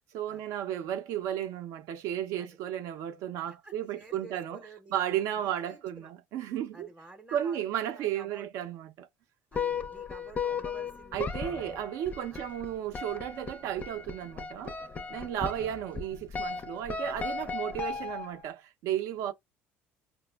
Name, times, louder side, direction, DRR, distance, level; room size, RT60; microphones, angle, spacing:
voice 1, 0.1-4.6 4.9-6.9 7.3-9.1 11.1-14.8 15.1-19.3, right 11 dB, 70° right, 0.5 m, -34 dB
voice 2, 3.1-5.0 5.4-6.1 6.7-8.5 9.5-11.9 12.3-12.5 15.1-15.3 17.5-17.6 19.2-19.3, right 2 dB, 15° right, 0.6 m, -52 dB
sound 1, 9.5-18.5, left 5 dB, 30° left, 0.4 m, -36 dB
5.0 x 2.0 x 2.2 m
supercardioid pair, 100°, 6 cm